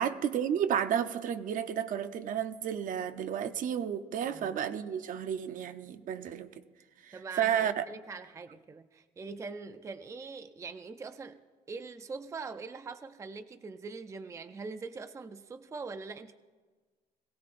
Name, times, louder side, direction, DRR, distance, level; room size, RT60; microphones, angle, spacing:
voice 1, 0.0-6.5 7.0-7.8, right 9 dB, 60° right, 10 dB, 0.7 m, -32 dB
voice 2, 7.1-11.4 11.7-16.4, right 4 dB, 20° right, 10 dB, 0.4 m, -43 dB
21.0 x 16.0 x 2.5 m, 1.4 s
cardioid pair, 130°, 15 cm